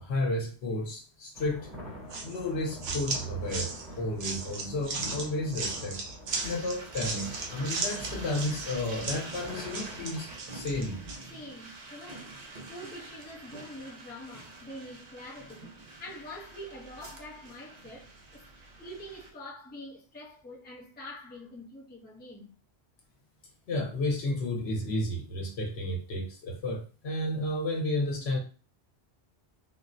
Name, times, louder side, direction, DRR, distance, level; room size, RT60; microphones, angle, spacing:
voice 1, 0.0-1.7 2.2-6.0 6.4-11.0 23.7-28.4, left 1 dB, 75° left, 1.1 m, -32 dB
sound 1, 1.3-10.4, equal, 90° right, 2.1 m, -45 dB
sound 2, 2.1-11.3, right 4 dB, 70° right, 0.9 m, -36 dB
sound 3, 6.3-19.3, right 3 dB, 45° right, 0.6 m, -46 dB
voice 2, 11.3-18.5 18.8-22.5, left 1 dB, 10° left, 0.6 m, -45 dB
3.8 x 2.1 x 2.6 m
omnidirectional pair, 1.1 m